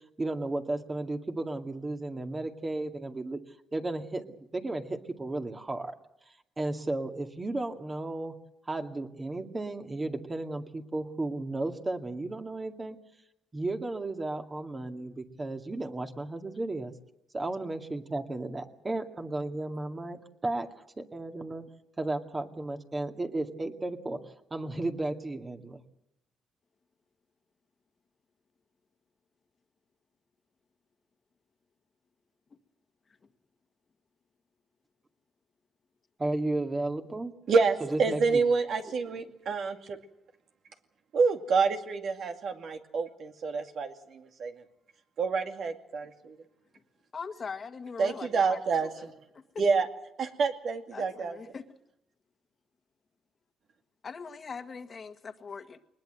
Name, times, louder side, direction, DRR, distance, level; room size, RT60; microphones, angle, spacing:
voice 1, 0.2-3.4 3.7-6.0 6.6-8.3 8.7-13.0 13.5-16.9 17.3-20.7 21.0-21.6 22.0-24.2 24.5-25.8 36.2-37.3 37.9-38.4, right 2 dB, 25° right, 5 dB, 2.1 m, -34 dB
voice 2, 37.5-40.0 41.1-44.6 45.2-46.4 48.0-49.1 49.6-49.9 50.2-51.4, right 4 dB, 60° right, 5 dB, 2.4 m, -28 dB
voice 3, 47.1-49.1 50.9-51.6 54.0-55.9, left 5 dB, 40° left, 8 dB, 1.7 m, -41 dB
21.5 x 20.5 x 7.9 m, 0.81 s
cardioid pair, 90°, 0 cm